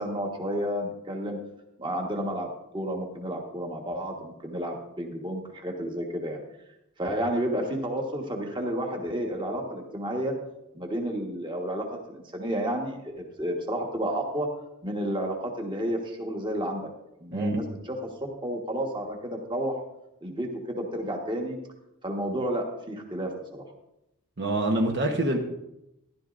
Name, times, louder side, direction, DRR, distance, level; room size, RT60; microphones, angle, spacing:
voice 1, 0.0-1.4 1.8-2.5 2.7-6.4 7.0-10.3 10.7-14.5 14.8-16.8 17.2-19.8 20.2-21.6 22.0-23.6, equal, 20° right, 1 dB, 1.4 m, -31 dB
voice 2, 17.3-17.6 24.4-25.4, right 1 dB, 50° right, 2 dB, 1.1 m, -25 dB
14.5 x 11.5 x 2.6 m, 0.87 s
head